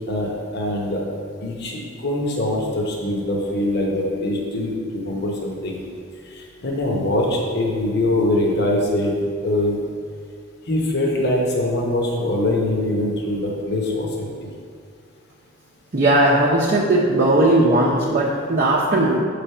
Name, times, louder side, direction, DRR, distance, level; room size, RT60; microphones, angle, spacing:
voice 1, 0.1-1.0 1.4-5.8 6.3-9.1 9.4-9.7 10.7-14.3, left 1 dB, 55° left, -2 dB, 0.9 m, -23 dB
voice 2, 15.9-19.2, right 1 dB, 45° right, -6 dB, 0.7 m, -17 dB
6.9 x 3.4 x 5.5 m, 2.2 s
head